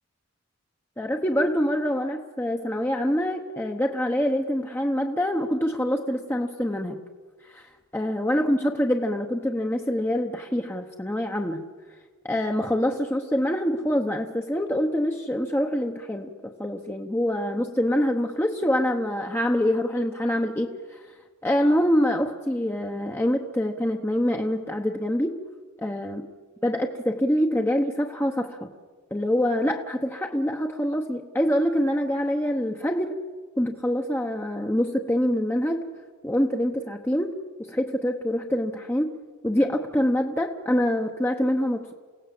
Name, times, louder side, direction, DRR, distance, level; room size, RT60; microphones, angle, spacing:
voice 1, 1.0-7.0 7.5-7.7 7.9-11.6 12.2-21.0 21.4-25.4 25.8-26.3 26.6-28.7 29.1-33.2 33.6-35.9 36.2-37.3 37.7-39.1 39.4-41.9, equal, 10° left, 2 dB, 0.9 m, -25 dB
28.5 x 17.0 x 7.7 m, 1.5 s
head